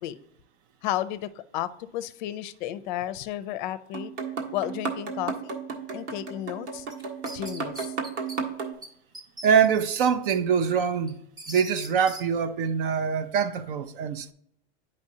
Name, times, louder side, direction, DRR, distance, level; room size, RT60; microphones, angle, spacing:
voice 1, 0.8-4.1 4.5-5.6 5.9-6.9 7.3-7.9, left 13 dB, 45° left, 0.5 m, -33 dB
sound 1, 3.9-8.7, right 5 dB, 80° right, 1.6 m, -34 dB
sound 2, 6.9-8.4 8.8-8.9 9.1-10.4 10.8-12.2, right 1 dB, 10° right, 0.6 m, -41 dB
voice 2, 9.4-11.2 11.5-14.3, right 7 dB, 50° right, 0.6 m, -24 dB
9.4 x 5.2 x 2.8 m
supercardioid pair, 155°, 34 cm